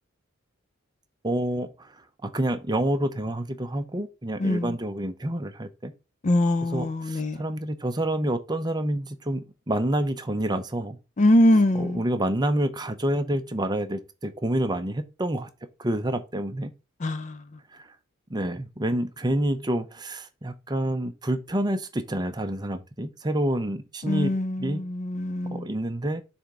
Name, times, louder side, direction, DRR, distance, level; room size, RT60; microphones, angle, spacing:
voice 1, 1.2-2.0 2.2-5.9 6.7-11.0 11.7-15.5 15.8-16.7 17.7-17.9 18.3-24.3 24.6-24.8 25.5-26.2, right 1 dB, 20° right, 0.7 m, -28 dB
voice 2, 4.4-4.7 6.2-7.4 11.2-12.0 17.0-17.4 24.1-25.7, left 1 dB, 35° left, 0.5 m, -23 dB
7.1 x 3.5 x 5.0 m
head